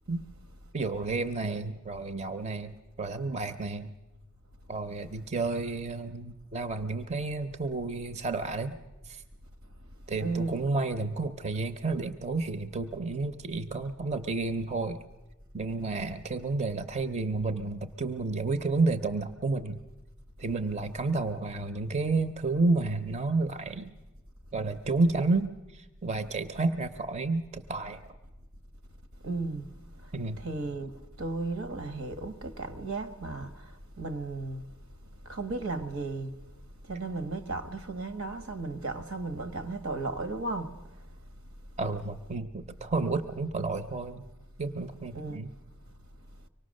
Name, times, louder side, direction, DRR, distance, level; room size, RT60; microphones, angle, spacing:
voice 1, 0.7-2.7 3.0-3.9 4.7-8.7 9.1-9.2 10.1-15.0 15.5-19.8 20.4-23.9 24.5-28.0 30.1-30.4 41.8-44.2 44.6-45.5, right 3 dB, 30° right, 0.6 m, -31 dB
voice 2, 10.2-10.6 29.2-29.6 30.4-33.6 34.0-34.6 35.3-36.3 36.9-40.7 45.1-45.4, right 3 dB, 75° right, 1.2 m, -34 dB
24.5 x 18.5 x 6.4 m
head